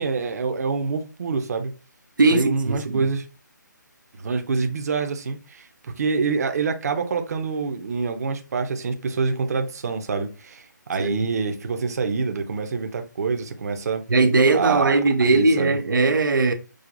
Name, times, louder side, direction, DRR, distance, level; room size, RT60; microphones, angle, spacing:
voice 1, 0.0-1.7 2.3-3.2 4.2-5.6 6.0-10.6 10.9-14.0 14.5-14.9 15.3-15.8, right 4 dB, 55° right, 0.8 m, -26 dB
voice 2, 2.2-3.1 11.0-11.2 14.1-16.5, right 3 dB, 90° right, 0.7 m, -19 dB
6.3 x 2.4 x 2.6 m
hypercardioid pair, 155°, 10 cm